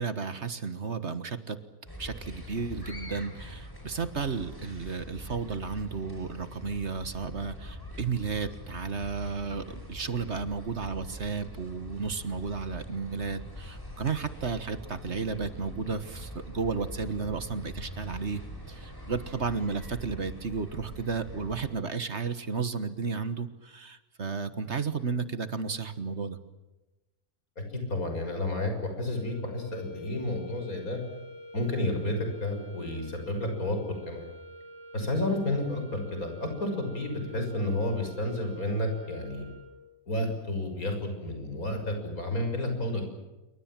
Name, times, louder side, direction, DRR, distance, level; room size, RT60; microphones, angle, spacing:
voice 1, 0.0-1.6 2.0-18.4 18.7-26.4, right 5 dB, 50° right, 12 dB, 1.7 m, -33 dB
sound 1, 1.9-21.7, equal, 15° left, 5.1 m, -43 dB
voice 2, 27.7-31.0 31.5-33.8 34.1-34.3 34.9-39.5 40.1-43.0, left 1 dB, 75° left, 5 dB, 6.9 m, -31 dB
sound 2, 29.1-40.0, left 1 dB, 45° left, 7.8 m, -47 dB
27.5 x 24.0 x 7.6 m, 1.1 s
omnidirectional pair, 1.5 m